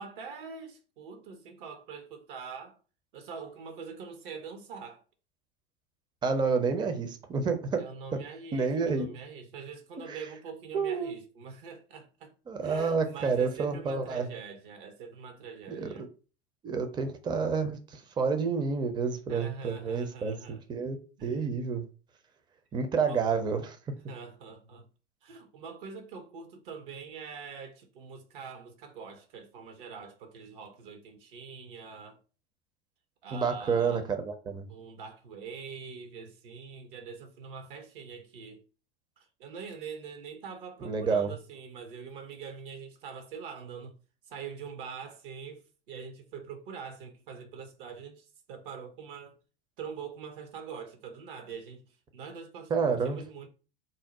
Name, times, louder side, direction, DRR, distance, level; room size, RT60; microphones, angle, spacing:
voice 1, 0.0-2.8 3.1-5.0 7.8-12.3 12.6-16.1 19.3-20.6 21.2-21.5 23.0-23.2 24.1-24.9 25.2-32.2 33.2-34.1 34.7-38.6 39.2-43.9 44.2-49.4 49.8-53.5, right 6 dB, 60° right, 0.7 m, -44 dB
voice 2, 6.2-7.8 8.5-9.1 10.1-10.2 10.7-11.1 12.5-14.3 15.7-16.1 16.6-20.3 20.7-21.8 22.7-23.8 33.3-34.6 40.8-41.3 52.7-53.2, right 5 dB, 15° right, 0.5 m, -29 dB
2.6 x 2.0 x 4.0 m
hypercardioid pair, 90°, 30 cm